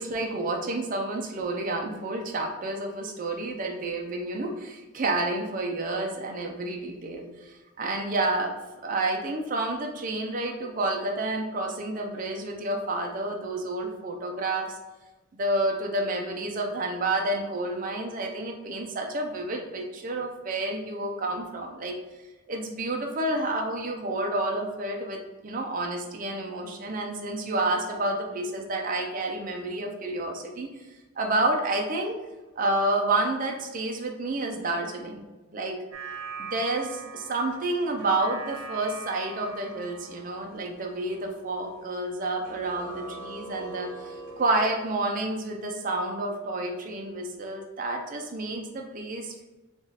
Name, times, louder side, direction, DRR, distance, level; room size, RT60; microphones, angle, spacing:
voice 1, 0.0-8.5 8.8-14.7 15.4-22.0 22.5-30.7 31.2-32.2 32.6-35.2 35.5-35.8 36.4-49.4, right 2 dB, 40° right, 2 dB, 0.5 m, -29 dB
sound 1, 35.9-42.1 42.4-45.0, right 3 dB, 90° right, 0.8 m, -42 dB
3.5 x 2.4 x 4.1 m, 1.1 s
head